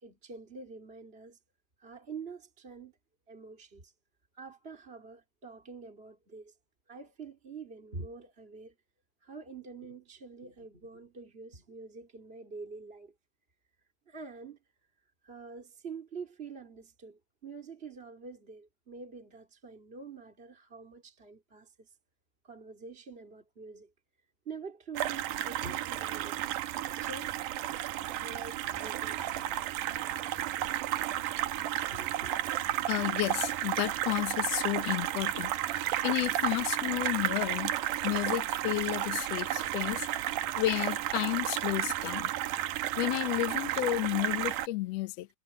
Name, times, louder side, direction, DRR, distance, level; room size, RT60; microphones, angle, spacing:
voice 1, 0.0-1.4 1.8-2.9 3.3-3.9 4.3-6.6 6.9-8.8 9.2-13.1 14.1-14.9 15.2-22.0 22.4-23.9 24.4-26.4 27.0-29.9 31.4-32.8 39.4-40.0, right 4 dB, 20° right, 2.4 m, -46 dB
sound 1, 25.0-44.7, right 13 dB, 75° right, 2.3 m, -32 dB
voice 2, 32.9-37.7 38.0-40.1 40.5-42.3 43.0-45.3, left 18 dB, 80° left, 1.4 m, -32 dB
omnidirectional pair, 4.0 m